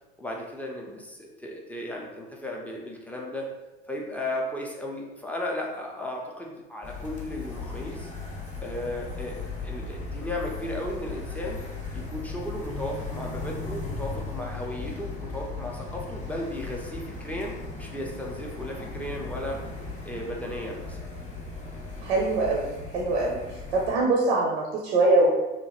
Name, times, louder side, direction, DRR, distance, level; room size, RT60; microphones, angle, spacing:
voice 1, 0.2-3.5 3.9-8.1 8.6-9.4 9.6-11.6 11.9-17.5 17.8-19.6 20.1-21.0, left 1 dB, 5° left, -1 dB, 0.4 m, -35 dB
sound 1, 6.8-23.9, left 3 dB, 20° left, 0.8 m, -37 dB
voice 2, 22.0-22.6 22.9-23.4 23.7-25.3, right 2 dB, 65° right, -2 dB, 0.6 m, -22 dB
2.9 x 2.1 x 2.8 m, 1.1 s
figure-of-eight pair, 70°, 33 cm